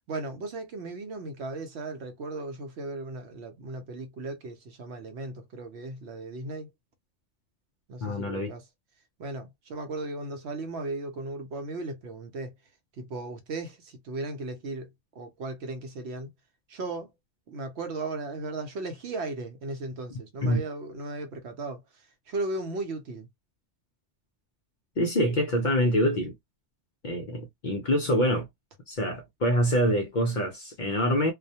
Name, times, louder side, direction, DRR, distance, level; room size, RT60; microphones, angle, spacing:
voice 1, 0.1-6.7 7.9-8.6 9.2-12.5 13.0-16.3 16.7-17.1 17.5-21.8 22.3-23.3, right 2 dB, 70° right, 0.9 m, -36 dB
voice 2, 8.0-8.5 20.4-20.6 25.0-26.3 27.0-28.5 28.9-31.3, equal, 55° left, 0.6 m, -25 dB
2.3 x 2.1 x 2.7 m
omnidirectional pair, 1.2 m